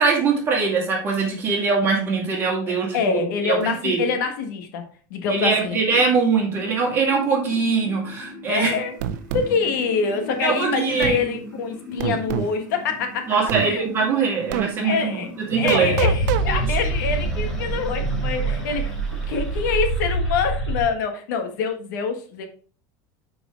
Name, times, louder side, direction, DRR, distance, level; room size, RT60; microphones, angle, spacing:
voice 1, 0.0-4.0 5.3-8.7 10.4-11.2 13.3-15.2 15.5-15.9 16.5-16.6, right 4 dB, 20° right, 2.3 m, -22 dB
voice 2, 2.9-4.8 5.1-5.8 8.5-9.0 9.3-13.8 14.8-15.3 15.6-19.0 19.3-22.5, left 5 dB, 80° left, 1.5 m, -25 dB
sound 1, 5.7-20.8, right 2 dB, 5° left, 1.7 m, -29 dB
sound 2, 9.0-9.5 11.0-11.2 12.0-12.5 13.5-13.7 14.5-14.7 15.7-16.5, right 11 dB, 80° right, 0.7 m, -25 dB
8.2 x 4.7 x 3.8 m
cardioid pair, 175°, 10 cm